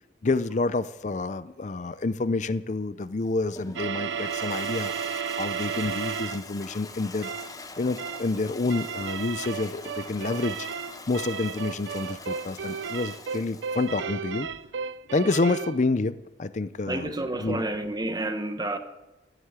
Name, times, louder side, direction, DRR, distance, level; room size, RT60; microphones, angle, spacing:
voice 1, 0.2-7.3 7.8-10.7 11.1-14.5 15.1-17.6, left 3 dB, 40° left, 0.5 m, -28 dB
Toilet flush, 3.0-14.1, left 3 dB, 20° left, 0.9 m, -44 dB
sound 1, 3.8-6.5 7.2-7.6 8.0-8.3 8.7-15.8, right 7 dB, 85° right, 0.5 m, -33 dB
voice 2, 16.9-18.8, right 1 dB, 20° right, 0.9 m, -30 dB
16.0 x 8.1 x 9.0 m
head